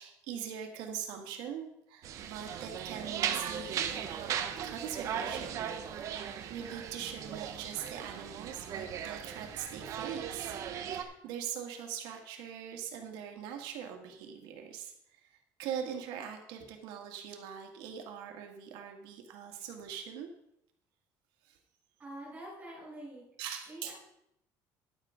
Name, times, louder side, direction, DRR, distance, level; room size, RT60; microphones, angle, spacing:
voice 1, 0.0-5.7 6.0-15.3 15.6-20.3 21.4-21.6 23.4-23.9, right 8 dB, 80° right, 3 dB, 2.1 m, -42 dB
sound 1, 2.0-11.0, right 8 dB, 45° right, 1.0 m, -38 dB
voice 2, 22.0-23.3 23.7-23.9, right 1 dB, 20° right, -7 dB, 5.4 m, -46 dB
11.5 x 8.1 x 5.2 m, 0.79 s
cardioid pair, 180°, 8 cm